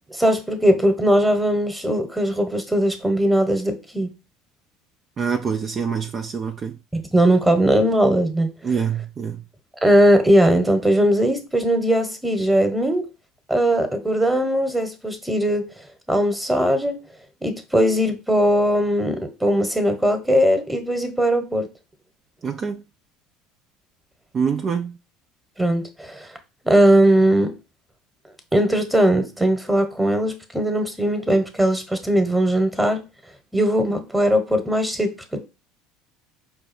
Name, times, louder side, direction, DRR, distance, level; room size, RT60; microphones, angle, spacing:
voice 1, 0.1-4.1 6.9-8.5 9.8-13.0 13.5-15.6 16.1-17.0 17.4-21.7 25.6-26.3 26.6-27.5 28.5-33.0 33.5-35.4, right 1 dB, 10° right, 1.1 m, -19 dB
voice 2, 5.2-6.8 8.6-9.4 22.4-22.8 24.3-25.0, right 6 dB, 35° right, 0.5 m, -25 dB
5.2 x 2.3 x 4.3 m
hypercardioid pair, 70°, 0 cm